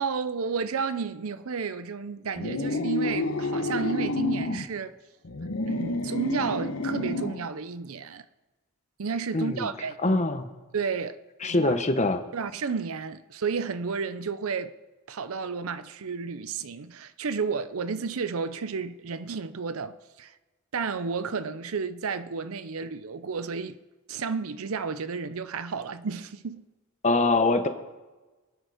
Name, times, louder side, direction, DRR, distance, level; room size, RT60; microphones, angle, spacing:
voice 1, 0.0-5.0 5.6-8.3 9.0-10.2 10.7-11.8 12.3-14.7 15.1-20.4 20.7-23.8 24.1-26.7, right 5 dB, 70° right, 0.6 m, -32 dB
sound 1, 2.3-4.7 5.2-7.5, left 2 dB, 75° left, 1.2 m, -29 dB
voice 2, 9.3-9.7 10.0-10.5 11.4-12.2 27.0-27.7, left 2 dB, 30° left, 1.0 m, -23 dB
24.0 x 9.0 x 5.0 m
head